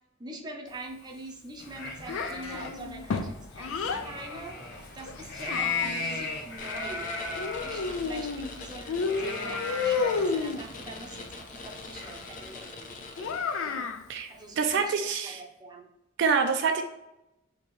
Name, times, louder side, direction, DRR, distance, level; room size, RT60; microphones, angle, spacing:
voice 1, 0.2-13.9 14.3-14.9 15.2-15.9, right 2 dB, 20° right, 1 dB, 0.6 m, -44 dB
sound 1, 1.6-12.5, left 4 dB, 60° left, 0.9 m, -37 dB
Child speech kid speaking, 2.1-4.1 5.0-6.2 7.4-8.5 8.9-10.6 13.2-14.0, left 4 dB, 85° left, 0.4 m, -31 dB
sound 2, 6.6-13.8, left 3 dB, 40° left, 0.6 m, -44 dB
voice 2, 14.6-15.4 16.2-16.8, right 5 dB, 60° right, 5 dB, 0.4 m, -26 dB
4.3 x 2.9 x 3.1 m, 0.88 s
head